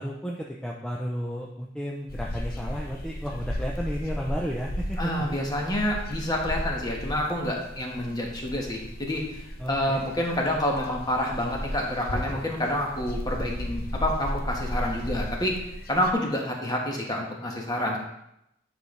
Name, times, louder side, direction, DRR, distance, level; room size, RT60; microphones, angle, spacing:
voice 1, 0.0-5.3 9.6-10.0, equal, 5° left, -2 dB, 0.5 m, -33 dB
sound 1, 2.1-16.1, equal, 50° left, 0.8 m, -35 dB
voice 2, 5.0-18.0, left 1 dB, 20° left, 0 dB, 1.3 m, -28 dB
9.5 x 5.2 x 3.2 m, 0.82 s
head